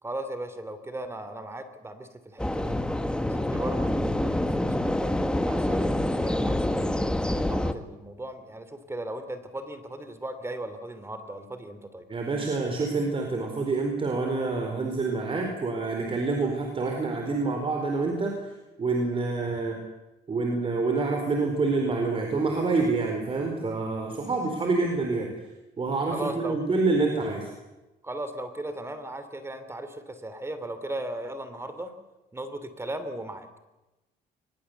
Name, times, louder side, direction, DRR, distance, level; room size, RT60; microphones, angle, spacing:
voice 1, 0.0-2.8 3.2-12.1 26.1-26.6 28.0-31.9 32.3-33.6, right 1 dB, 15° right, 11 dB, 2.9 m, -37 dB
sound 1, 2.4-7.7, left 1 dB, 5° left, 1.6 m, -26 dB
voice 2, 12.1-18.4 18.8-19.8 20.3-25.3 25.8-27.5, right 3 dB, 30° right, 3 dB, 4.5 m, -27 dB
23.0 x 21.0 x 8.2 m, 1.0 s
cardioid pair, 110°, 17 cm